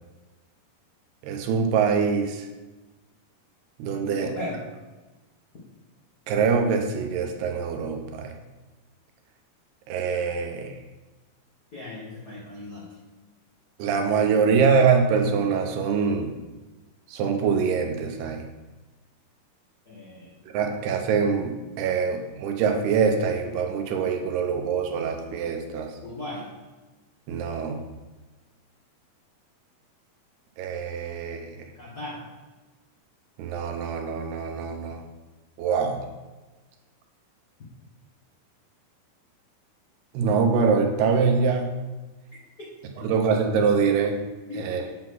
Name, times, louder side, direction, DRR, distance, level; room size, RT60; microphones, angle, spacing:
voice 1, 1.2-2.5 3.8-4.3 6.3-8.3 9.9-10.8 13.8-16.3 17.1-18.5 20.5-25.9 27.3-27.8 30.6-31.6 33.4-35.0 35.6-36.0 40.1-41.8 43.0-44.2 44.6-44.9, right 5 dB, 80° right, 3 dB, 2.8 m, -24 dB
voice 2, 4.0-4.6 11.7-12.9 19.8-20.3 26.0-26.5 31.7-32.2 44.5-44.9, left 1 dB, 85° left, -7 dB, 0.8 m, -37 dB
8.4 x 3.8 x 6.0 m, 1.2 s
omnidirectional pair, 4.6 m